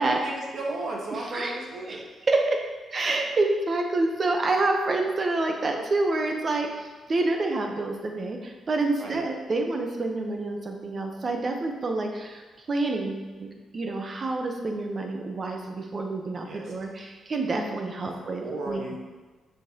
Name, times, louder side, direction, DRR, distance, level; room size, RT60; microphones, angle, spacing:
voice 1, 0.0-2.0 9.0-9.2 16.4-16.7 18.0-18.1 18.4-19.0, right 2 dB, 60° right, -1 dB, 1.2 m, -34 dB
voice 2, 1.1-1.5 1.9-2.0 2.3-2.6 2.9-6.7 7.1-12.4 12.7-19.0, right 2 dB, 45° right, 3 dB, 0.8 m, -27 dB
6.3 x 5.2 x 2.9 m, 1.3 s
cardioid pair, 75°, 0 cm